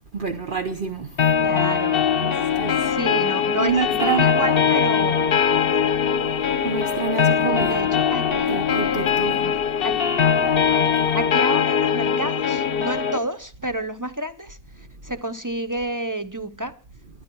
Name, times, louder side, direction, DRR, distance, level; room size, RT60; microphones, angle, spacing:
voice 1, 0.1-1.3 2.2-2.9 3.6-4.4 6.6-7.8 8.3-9.5, right 5 dB, 45° right, 1.0 m, -27 dB
sound 1, 1.2-13.2, left 7 dB, 50° left, 1.1 m, -21 dB
voice 2, 1.4-2.1 2.8-5.3 7.4-8.6 9.4-9.5 9.8-10.0 11.1-14.6 15.0-16.7, right 1 dB, 20° right, 0.7 m, -29 dB
20.5 x 11.0 x 4.6 m
omnidirectional pair, 1.2 m